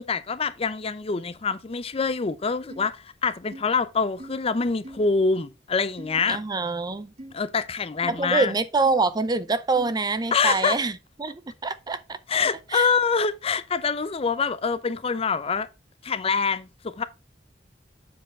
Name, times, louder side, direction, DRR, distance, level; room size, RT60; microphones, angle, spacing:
voice 1, 0.0-6.4 7.3-8.5 10.3-10.8 12.3-15.7 16.0-17.0, left 5 dB, 35° left, 0.5 m, -25 dB
sound 1, 2.7-2.9 3.5-3.6 4.2-4.3 4.8-5.1 6.0-6.2 7.2-7.3 8.0-8.2 8.9-9.0 9.7-9.9, right 1 dB, 40° right, 1.9 m, -41 dB
voice 2, 6.3-7.1 8.1-12.2 12.7-12.9, right 3 dB, 20° right, 0.5 m, -25 dB
7.5 x 4.5 x 4.3 m
head